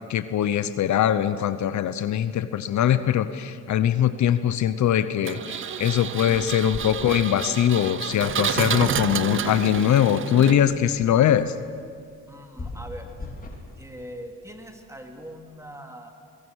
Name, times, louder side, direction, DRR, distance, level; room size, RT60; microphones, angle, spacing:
voice 1, 0.1-11.5, left 10 dB, 70° left, 12 dB, 1.0 m, -22 dB
Engine, 5.2-10.9, right 8 dB, 40° right, 0.8 m, -30 dB
sound 1, 6.0-15.4, left 2 dB, 30° left, 4.1 m, -44 dB
voice 2, 6.1-7.0 12.3-13.1 13.7-16.1, equal, 10° right, 3 dB, 3.0 m, -42 dB
24.5 x 22.0 x 6.5 m, 2.2 s
cardioid pair, 90°, 30 cm